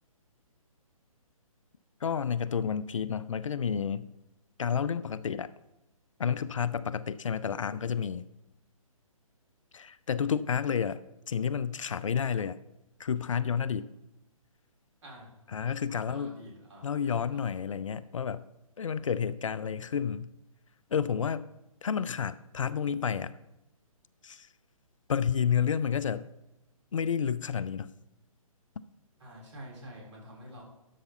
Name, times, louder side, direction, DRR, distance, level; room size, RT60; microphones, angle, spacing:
voice 1, 2.0-4.1 4.6-5.5 6.2-8.2 9.7-11.0 11.3-12.6 13.0-13.9 15.5-16.3 16.8-18.4 18.8-20.3 20.9-21.4 21.8-23.3 24.2-24.5 25.1-26.3 26.9-27.9, left 7 dB, 60° left, 0.5 m, -30 dB
voice 2, 15.0-15.3 15.9-17.4 29.2-30.6, equal, 55° right, 4.0 m, -48 dB
11.5 x 6.8 x 3.9 m
figure-of-eight pair, 135°, 18 cm